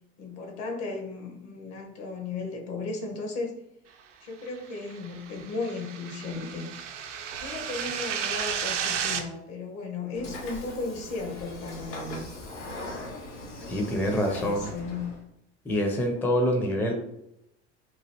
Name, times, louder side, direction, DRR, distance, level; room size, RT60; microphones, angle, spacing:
voice 1, 0.2-3.5 4.2-6.7 7.4-12.2 13.9-15.1, left 3 dB, 55° left, 3 dB, 1.0 m, -35 dB
sound 1, 4.8-9.2, right 7 dB, 85° right, 0.5 m, -33 dB
Train / Sliding door, 10.1-15.2, left 1 dB, 75° left, 1.2 m, -40 dB
voice 2, 13.7-14.7 15.6-16.9, equal, 5° left, 2 dB, 0.4 m, -26 dB
3.0 x 2.4 x 2.9 m, 0.81 s
hypercardioid pair, 75°, 35 cm